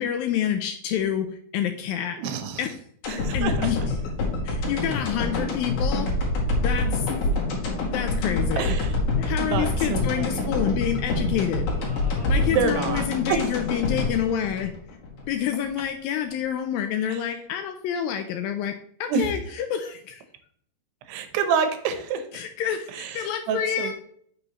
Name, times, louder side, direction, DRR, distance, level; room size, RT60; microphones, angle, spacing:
voice 1, 0.0-2.2 2.6-2.7 3.0-3.8 4.4-6.1 6.6-7.4 7.9-8.7 9.2-11.7 12.3-14.7 15.3-18.7 19.0-20.2 22.3-23.9, left 9 dB, 80° left, 7 dB, 2.1 m, -28 dB
voice 2, 2.2-2.6 3.1-3.7 8.6-9.0 9.4-10.5 12.5-13.4 17.1-17.2 19.1-19.3 21.1-22.3 22.9-23.9, right 6 dB, 90° right, 9 dB, 3.1 m, -28 dB
sound 1, 3.0-15.3 15.6-15.7, left 2 dB, 60° left, 3.4 m, -26 dB
sound 2, 11.7-13.1, equal, 35° left, 1.3 m, -45 dB
8.7 x 6.3 x 3.1 m, 0.62 s
omnidirectional pair, 4.6 m